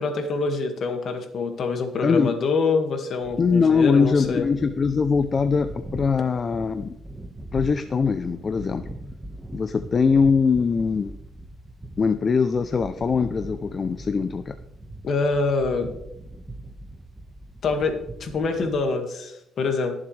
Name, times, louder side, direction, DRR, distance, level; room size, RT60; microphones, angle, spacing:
voice 1, 0.0-4.5 15.0-15.9 17.6-19.9, left 4 dB, 55° left, 5 dB, 1.9 m, -25 dB
voice 2, 2.0-2.4 3.4-7.0 7.5-8.9 9.5-11.1 12.0-14.5, left 5 dB, 40° left, 10 dB, 0.5 m, -22 dB
sound 1, 3.2-18.8, right 1 dB, 15° right, 1.4 m, -41 dB
20.5 x 7.3 x 3.4 m, 0.83 s
cardioid pair, 90°, 0 cm